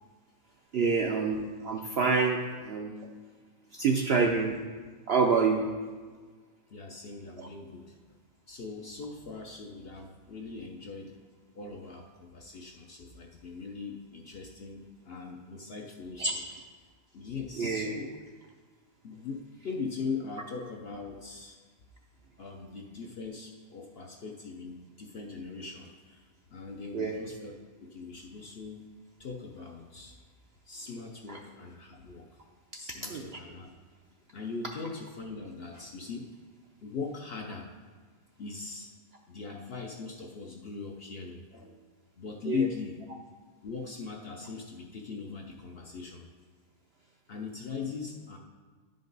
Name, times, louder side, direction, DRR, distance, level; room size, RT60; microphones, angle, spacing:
voice 1, 0.7-3.0 3.7-4.6 5.1-5.6 7.4-7.5 16.2-16.3 17.6-17.9 26.9-27.2 31.3-31.4 33.1-33.2 42.5-42.7, right 4 dB, 65° right, 1 dB, 0.6 m, -27 dB
voice 2, 6.7-8.0 8.5-11.1 11.5-16.4 17.1-18.1 19.0-21.6 22.4-26.2 26.5-27.5 27.8-28.9 29.2-30.2 30.7-32.3 32.7-33.7 34.3-36.3 36.8-37.7 38.4-38.9 39.3-41.8 42.2-43.0 43.6-46.3 47.3-48.4, left 5 dB, 55° left, 1 dB, 0.7 m, -40 dB
10.5 x 5.2 x 3.9 m, 1.5 s
omnidirectional pair, 1.6 m